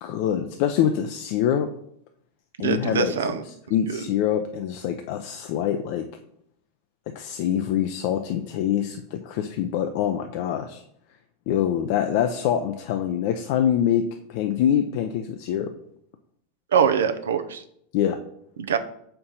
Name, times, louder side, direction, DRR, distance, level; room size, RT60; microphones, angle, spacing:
voice 1, 0.0-1.7 2.6-3.1 3.7-6.0 7.1-10.8 11.5-14.0 14.3-15.7 17.9-18.2, left 10 dB, 60° left, 6 dB, 0.4 m, -24 dB
voice 2, 2.6-3.4 3.9-4.0 16.7-17.6 18.6-18.8, right 7 dB, 90° right, 9 dB, 0.5 m, -23 dB
4.5 x 3.8 x 5.6 m, 0.71 s
hypercardioid pair, 120°, 0 cm